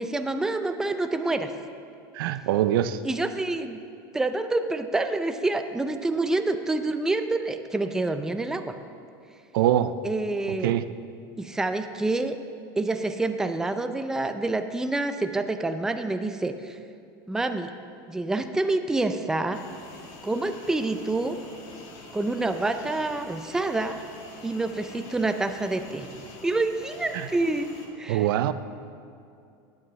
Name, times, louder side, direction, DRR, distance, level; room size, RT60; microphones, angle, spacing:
voice 1, 0.0-1.5 3.0-3.8 4.1-8.7 10.0-10.7 11.4-12.4 12.8-16.8 17.3-17.7 18.1-19.6 20.2-21.4 22.1-24.0 24.4-26.1 26.4-28.3, right 2 dB, 5° right, 8 dB, 0.4 m, -27 dB
voice 2, 2.1-3.0 9.5-9.9 10.5-10.8 27.1-27.3 28.1-28.5, right 12 dB, 90° right, 13 dB, 0.5 m, -23 dB
sound 1, 19.5-27.9, left 2 dB, 60° left, 1.6 m, -45 dB
16.0 x 9.3 x 3.2 m, 2.5 s
supercardioid pair, 145°, 11 cm